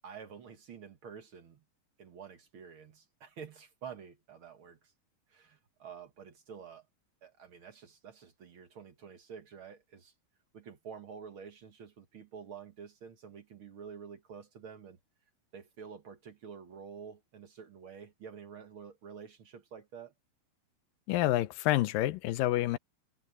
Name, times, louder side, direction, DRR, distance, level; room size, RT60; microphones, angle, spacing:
voice 1, 0.0-1.6 2.0-4.9 5.3-6.9 7.2-10.1 10.5-15.0 15.5-20.1, right 7 dB, 55° right, 1.6 m, -49 dB
voice 2, 21.1-22.8, left 15 dB, 90° left, 2.5 m, -28 dB
omnidirectional pair, 3.9 m